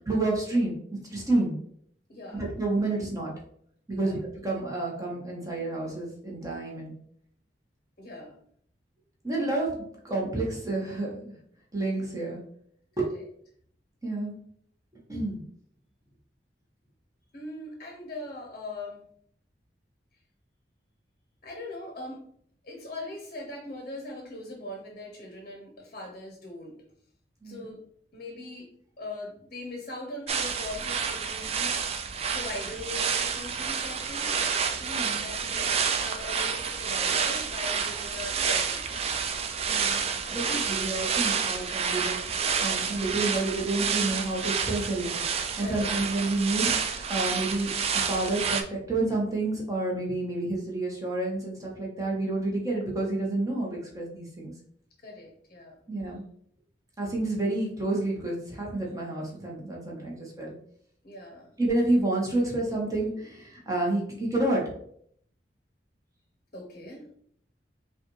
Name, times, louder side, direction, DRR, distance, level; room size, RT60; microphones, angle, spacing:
voice 1, 0.1-1.6 2.3-3.3 3.9-6.9 9.2-9.8 10.0-11.3 11.7-12.4 13.0-13.1 14.0-14.3 15.1-15.4 27.4-27.7 34.8-35.3 39.7-40.0 40.3-42.2 42.6-45.2 45.6-54.5 55.9-56.2 57.0-60.5 61.6-64.6, right 2 dB, 20° right, -3 dB, 1.0 m, -29 dB
voice 2, 2.1-2.5 3.9-4.2 8.0-8.4 13.0-13.3 17.3-19.1 21.4-22.2 22.6-26.8 27.4-27.8 28.1-28.7 29.0-32.0 32.3-34.3 35.1-39.0 40.3-40.6 45.6-46.3 55.0-55.7 61.0-61.5 66.5-67.1, left 2 dB, 45° left, 0 dB, 0.8 m, -40 dB
sound 1, 30.3-48.6, right 6 dB, 35° right, 0.3 m, -29 dB
5.3 x 2.3 x 3.1 m, 0.65 s
head